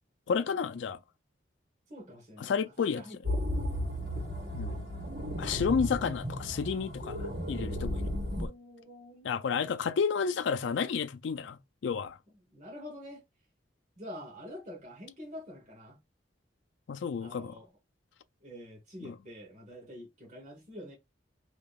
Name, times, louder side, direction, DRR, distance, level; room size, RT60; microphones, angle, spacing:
voice 1, 0.3-1.0 2.4-3.0 4.5-4.8 5.4-8.1 8.4-8.5 9.2-12.2 16.9-17.5 19.0-19.1, left 6 dB, 70° left, 0.4 m, -31 dB
voice 2, 1.9-3.4 8.3-9.3 12.5-13.2 14.0-16.0 17.2-17.7 18.4-20.9, left 1 dB, 40° right, 1.1 m, -47 dB
sound 1, 3.2-8.5, equal, 60° right, 1.6 m, -34 dB
3.5 x 2.8 x 2.3 m
head